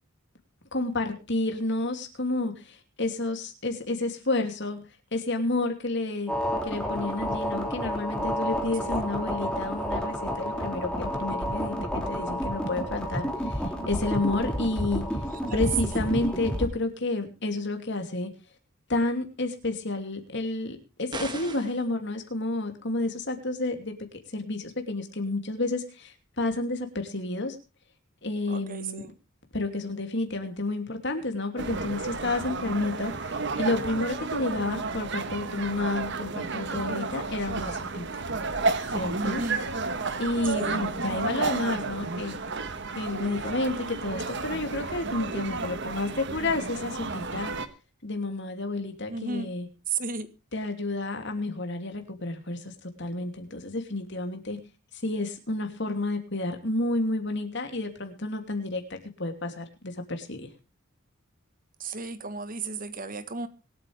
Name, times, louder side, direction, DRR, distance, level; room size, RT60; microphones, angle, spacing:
voice 1, 0.7-4.8 5.1-6.3 6.7-15.0 15.5-18.3 18.9-23.9 24.3-27.6 28.2-29.1 29.5-38.2 38.9-39.4 40.2-42.4 42.9-47.5 48.0-49.7 50.5-54.6 55.0-60.5, left 2 dB, 55° left, 5 dB, 2.8 m, -30 dB
sound 1, 6.3-16.7, equal, 5° left, 2.8 m, -30 dB
sound 2, 21.1-21.8, right 3 dB, 20° right, 1.7 m, -37 dB
voice 2, 28.5-29.1 39.2-39.6 40.4-40.8 49.1-49.5 49.9-50.3 61.8-63.5, right 4 dB, 40° right, 12 dB, 1.4 m, -34 dB
sound 3, 31.6-47.7, right 3 dB, 55° right, 1.3 m, -32 dB
25.0 x 8.7 x 3.4 m, 0.32 s
head